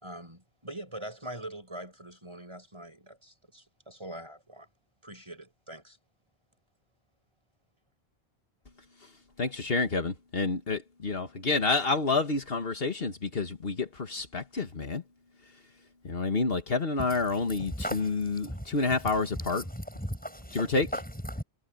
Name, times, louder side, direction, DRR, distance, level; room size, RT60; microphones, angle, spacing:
voice 1, 0.0-4.7 5.0-6.0, right 1 dB, 25° right, 6.0 m, -43 dB
voice 2, 9.4-15.0 16.0-19.6 20.5-20.9, left 3 dB, 65° left, 1.8 m, -29 dB
voice 3, 17.0-21.4, equal, 10° left, 7.0 m, -38 dB
omnidirectional pair, 1.1 m